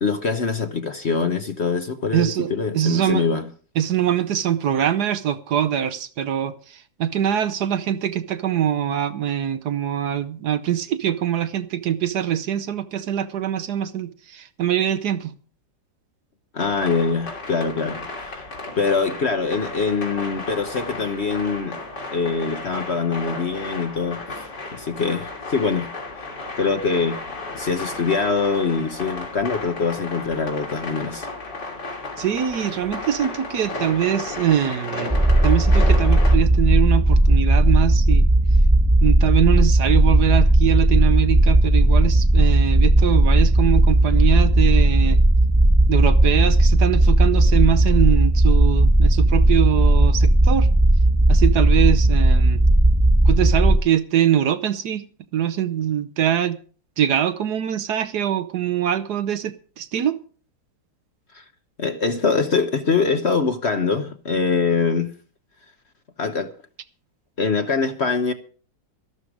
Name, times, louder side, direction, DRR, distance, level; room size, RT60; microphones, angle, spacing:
voice 1, 0.0-3.5 16.5-18.4 18.8-21.8 22.1-25.9 26.5-27.2 27.5-31.3 61.3-61.4 61.8-65.1 66.2-66.5 67.4-68.3, left 4 dB, 45° left, 1.0 m, -23 dB
voice 2, 2.1-2.5 2.7-3.3 3.8-15.3 32.2-35.1 35.4-38.3 39.0-45.2 45.9-50.7 51.3-52.6 53.3-55.0 55.3-56.6 57.0-60.2, right 10 dB, 65° right, 1.2 m, -23 dB
sound 1, 16.6-36.4, left 2 dB, 65° left, 3.6 m, -33 dB
sound 2, 35.1-53.8, right 1 dB, 10° right, 1.1 m, -16 dB
13.0 x 12.5 x 4.9 m
omnidirectional pair, 2.0 m